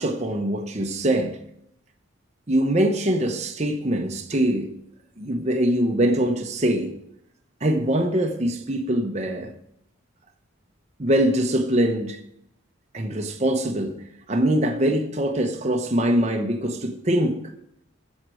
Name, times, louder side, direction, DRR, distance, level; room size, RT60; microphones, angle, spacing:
voice 1, 0.0-1.4 2.5-4.7 5.2-6.9 7.6-9.5 11.0-12.2 12.9-14.0 14.3-17.5, right 1 dB, 30° right, 0.9 m, -23 dB
7.8 x 7.4 x 6.3 m
head